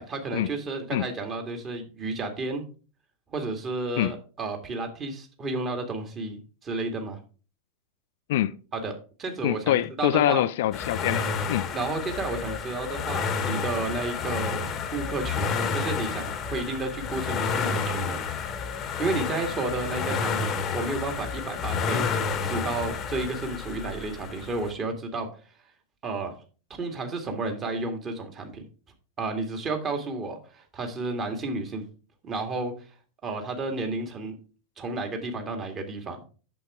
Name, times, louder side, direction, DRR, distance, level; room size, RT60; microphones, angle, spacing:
voice 1, 0.0-2.6 3.3-7.2 8.7-10.5 11.7-18.2 19.0-22.1 22.4-25.3 26.0-26.3 26.7-28.6 29.2-31.8 32.2-32.7 33.2-34.4 34.8-36.2, right 3 dB, 25° right, 2.0 m, -32 dB
voice 2, 9.4-11.7, left 13 dB, 55° left, 0.4 m, -25 dB
sound 1, 10.7-24.7, left 5 dB, 30° left, 1.0 m, -30 dB
8.4 x 7.1 x 3.5 m
figure-of-eight pair, 90°, 0 cm